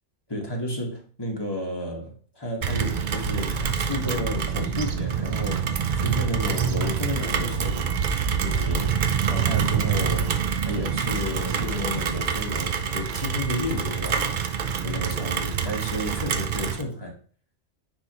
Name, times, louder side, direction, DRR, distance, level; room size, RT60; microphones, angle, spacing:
voice 1, 0.3-7.9 8.4-8.9 9.3-10.3 10.6-14.4 14.8-17.1, left 1 dB, 20° left, 1.4 m, -32 dB
Rain, 2.6-16.8, right 7 dB, 50° right, 0.6 m, -26 dB
sound 1, 7.6-13.5, right 8 dB, 35° right, 1.2 m, -44 dB
9.6 x 3.6 x 2.9 m
omnidirectional pair, 1.2 m